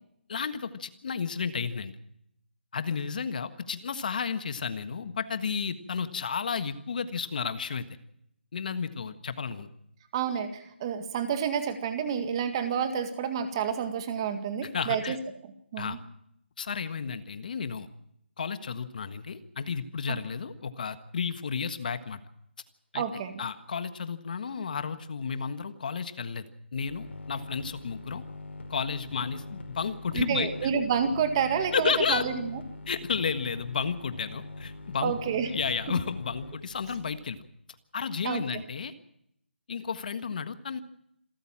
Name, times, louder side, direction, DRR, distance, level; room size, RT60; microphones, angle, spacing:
voice 1, 0.3-2.0 2.7-7.9 8.5-9.7 14.6-15.2 15.8-16.0 16.6-17.9 18.4-22.2 22.9-23.0 23.4-26.4 26.7-28.2 28.7-30.7 31.7-32.3 32.9-35.1 35.5-37.4 37.9-38.9 39.7-40.8, left 6 dB, 45° left, 10 dB, 1.6 m, -32 dB
voice 2, 10.1-15.2 15.7-16.0 20.1-20.2 22.9-23.4 30.1-32.6 35.0-35.5 38.2-38.4, right 7 dB, 25° right, 8 dB, 1.9 m, -29 dB
sound 1, 26.9-37.2, left 2 dB, 75° left, 5.2 m, -43 dB
27.5 x 13.5 x 7.4 m, 0.76 s
figure-of-eight pair, 165°, 6 cm